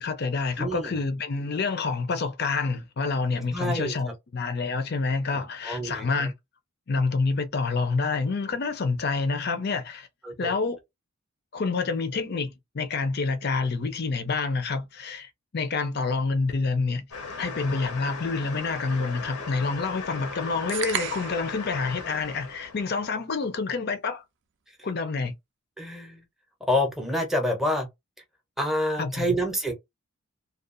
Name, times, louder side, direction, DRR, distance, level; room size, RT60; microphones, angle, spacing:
voice 1, 0.0-6.3 6.9-10.1 10.4-10.8 11.5-17.0 17.4-24.2 24.8-25.3 29.0-29.4, left 4 dB, 45° left, 0.5 m, -28 dB
voice 2, 0.6-1.0 3.5-3.9 5.3-6.3 10.2-10.5 24.7-24.8 25.8-26.2 26.7-27.9 28.6-29.7, left 1 dB, ahead, 0.5 m, -28 dB
sound 1, 17.1-23.1, left 4 dB, 85° left, 0.8 m, -38 dB
sound 2, 20.7-21.5, right 9 dB, 50° right, 0.4 m, -31 dB
2.7 x 2.3 x 2.5 m
head